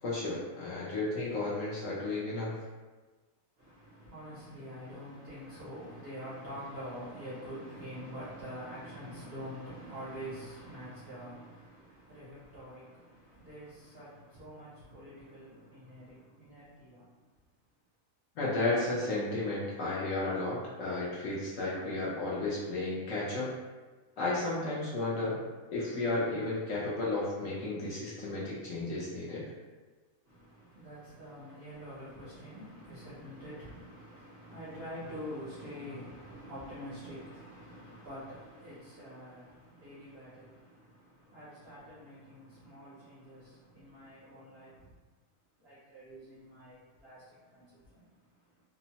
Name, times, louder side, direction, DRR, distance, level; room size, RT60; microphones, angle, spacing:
voice 1, 0.0-2.6 18.4-23.5 24.2-25.4 25.7-29.4, left 2 dB, 65° left, -7 dB, 0.9 m, -33 dB
voice 2, 3.6-17.2 30.2-44.9 45.6-48.6, equal, 60° right, -9 dB, 0.7 m, -46 dB
2.9 x 2.0 x 2.7 m, 1.3 s
omnidirectional pair, 1.8 m